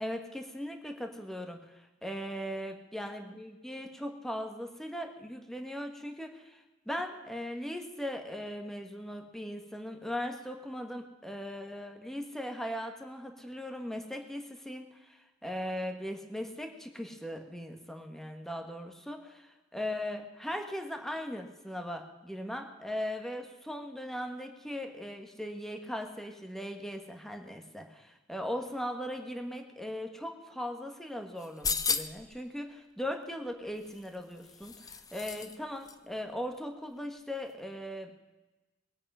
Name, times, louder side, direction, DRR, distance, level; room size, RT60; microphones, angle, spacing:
voice 1, 0.0-1.6 2.0-38.1, equal, ahead, 4 dB, 1.4 m, -39 dB
sound 1, 31.4-32.3 33.8-35.6 35.8-35.9, left 5 dB, 20° left, 0.6 m, -34 dB
21.5 x 8.6 x 5.6 m, 1.1 s
head